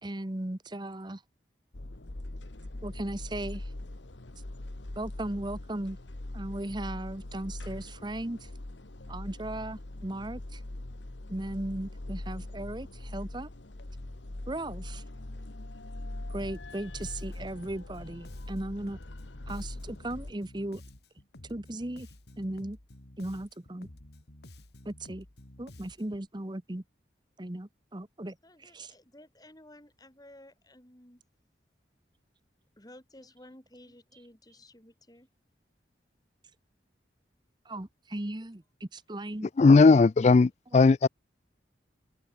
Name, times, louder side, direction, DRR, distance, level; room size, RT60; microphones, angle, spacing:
voice 1, 0.0-1.2 2.8-3.7 5.0-6.0 6.3-8.5 9.1-10.6 11.3-13.5 14.5-15.0 16.3-19.0 19.5-20.8 21.4-22.1 22.4-22.8 23.2-23.9 24.8-25.3 25.6-26.8 27.4-28.9 37.6-39.5 40.7-40.8, right 1 dB, 25° right, 1.0 m, -37 dB
sound 1, 1.7-20.3, left 1 dB, 85° left, 1.5 m, -42 dB
Bass guitar, 16.4-26.3, left 1 dB, 60° left, 2.2 m, -51 dB
voice 2, 28.4-31.2 32.8-35.3, left 1 dB, 20° left, 3.9 m, -54 dB
voice 3, 39.6-41.1, left 4 dB, 35° left, 0.3 m, -18 dB
head